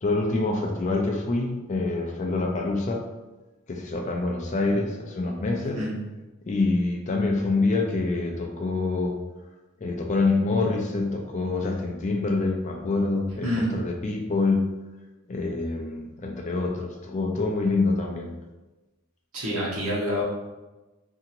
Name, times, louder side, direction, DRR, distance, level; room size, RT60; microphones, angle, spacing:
voice 1, 0.0-3.0 3.7-5.8 6.5-9.2 9.8-14.7 15.3-18.3, left 3 dB, 30° left, 1 dB, 0.3 m, -26 dB
voice 2, 13.4-13.7 19.3-20.2, equal, 85° right, -5 dB, 1.1 m, -27 dB
2.8 x 2.7 x 2.5 m, 1.1 s
head